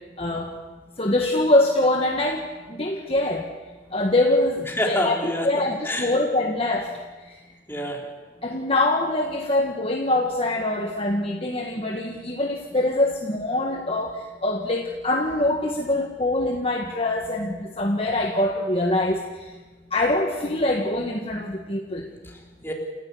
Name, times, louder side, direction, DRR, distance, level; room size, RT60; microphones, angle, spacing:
voice 1, 0.2-0.5 1.0-3.5 3.9-6.9 7.3-7.4 8.4-19.5 19.9-22.1, left 1 dB, 30° left, 2 dB, 1.6 m, -24 dB
voice 2, 4.7-5.5 5.8-6.1 7.7-8.1 22.2-22.7, equal, 15° left, 0 dB, 3.9 m, -27 dB
29.5 x 15.0 x 8.5 m, 1.3 s
head